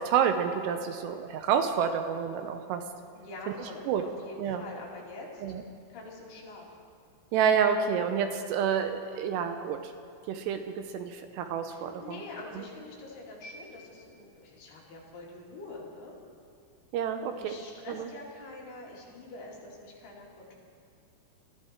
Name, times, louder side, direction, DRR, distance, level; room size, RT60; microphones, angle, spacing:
voice 1, 0.0-2.8 3.9-4.0 4.4-4.6 5.4-5.6 7.3-9.8 10.3-12.2 16.9-17.6 17.9-18.1, right 7 dB, 80° right, 7 dB, 2.7 m, -28 dB
voice 2, 3.1-3.9 4.2-5.4 5.9-6.7 11.7-16.2 17.4-20.6, left 2 dB, 65° left, -4 dB, 4.5 m, -45 dB
21.0 x 14.5 x 4.5 m, 2.4 s
omnidirectional pair, 5.1 m